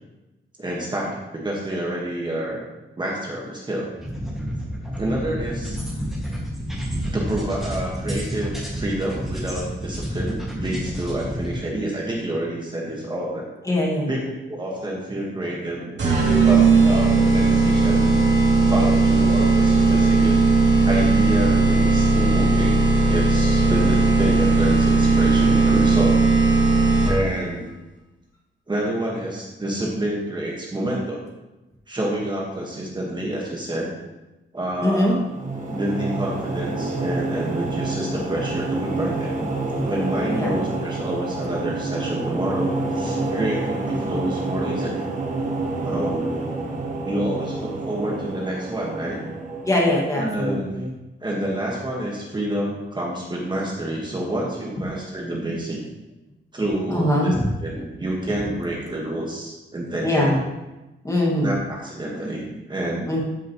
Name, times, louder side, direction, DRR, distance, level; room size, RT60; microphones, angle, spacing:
voice 1, 0.6-2.7 3.0-3.9 5.0-5.8 6.9-13.5 14.1-16.2 16.4-18.2 18.7-20.4 20.8-26.2 27.0-27.7 28.7-31.2 31.9-33.9 34.5-35.2 35.7-39.5 39.9-45.0 45.8-46.5 47.0-49.2 50.2-50.8 51.2-55.8 56.5-57.3 57.6-60.3 61.4-63.1, right 1 dB, 20° right, -3 dB, 1.5 m, -28 dB
sound 1, 4.0-11.6, equal, ahead, 1.9 m, -30 dB
voice 2, 13.7-14.1 34.8-35.2 40.3-40.5 49.6-50.9 56.9-57.5 60.0-60.4 61.0-61.6 63.1-63.2, left 1 dB, 15° left, -3 dB, 1.9 m, -21 dB
sound 2, 16.0-27.4, right 3 dB, 65° right, 2.6 m, -17 dB
sound 3, 35.1-50.4, right 2 dB, 40° right, 1.3 m, -28 dB
13.5 x 6.4 x 3.1 m, 1.0 s
wide cardioid pair, 165°, 20 cm